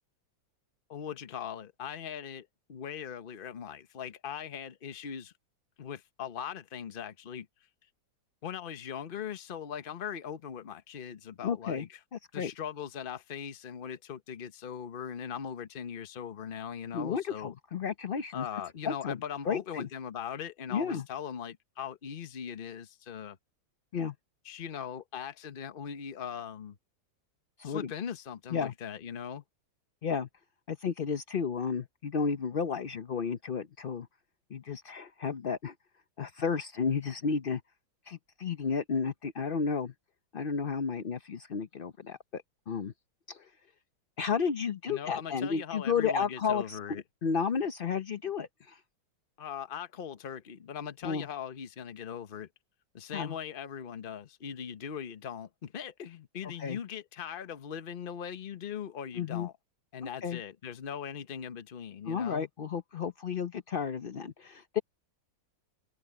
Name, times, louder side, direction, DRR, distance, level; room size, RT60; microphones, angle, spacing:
voice 1, 0.9-5.3 5.8-7.5 8.4-12.0 12.3-17.5 18.3-23.4 24.4-26.8 27.6-29.4 44.9-47.0 49.4-52.5 52.9-59.5 59.9-62.5, left 8 dB, 35° left, 0.9 m, -40 dB
voice 2, 11.4-11.9 12.1-12.5 16.9-18.5 18.8-19.2 19.5-19.9 20.7-21.0 23.9-24.1 27.6-27.9 28.5-28.7 30.0-30.3 30.7-34.1 34.5-35.7 36.2-37.6 38.1-39.9 40.3-42.9 43.3-43.5 44.2-46.8 47.2-48.8 51.0-51.3 53.1-53.4 56.6-56.8 59.2-59.5 60.2-60.4 62.1-64.8, left 6 dB, 60° left, 0.5 m, -32 dB
omnidirectional pair, 2.0 m